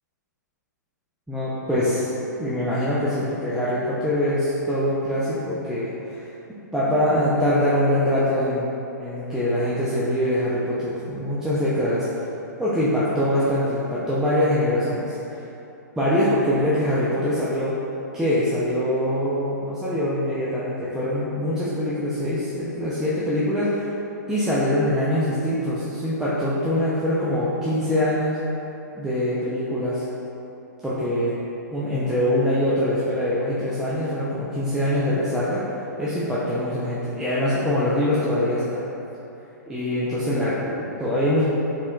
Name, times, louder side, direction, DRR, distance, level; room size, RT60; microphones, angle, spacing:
voice 1, 1.3-2.1 2.4-6.2 6.7-8.7 9.0-12.1 12.6-15.4 16.0-17.8 18.1-23.9 24.3-28.4 29.0-30.0 30.8-31.3 31.7-35.6 36.0-38.9 39.6-41.4, left 1 dB, 5° right, -10 dB, 0.5 m, -23 dB
4.2 x 3.7 x 2.3 m, 3.0 s
hypercardioid pair, 120°, 10 cm